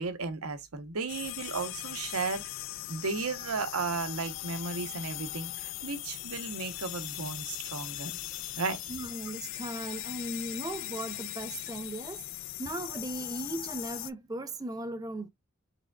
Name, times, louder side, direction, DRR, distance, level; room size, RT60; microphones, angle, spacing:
voice 1, 0.0-2.5 2.9-8.2 8.6-8.8, right 4 dB, 90° right, 0.8 m, -34 dB
sound 1, 1.1-14.1, left 16 dB, 60° left, 0.3 m, -39 dB
voice 2, 8.9-15.3, right 1 dB, 15° right, 0.4 m, -38 dB
4.9 x 3.4 x 2.2 m
head